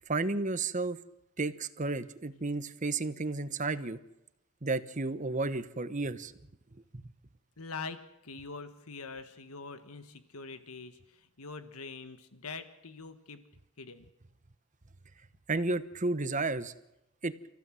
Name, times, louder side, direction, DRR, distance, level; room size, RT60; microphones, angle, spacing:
voice 1, 0.1-1.0 1.4-4.0 4.6-6.3 15.5-16.7 17.2-17.3, right 3 dB, 35° right, 12 dB, 1.1 m, -32 dB
voice 2, 7.6-13.4 13.8-14.0, left 4 dB, 80° left, 9 dB, 1.5 m, -44 dB
29.5 x 15.5 x 7.7 m, 0.90 s
head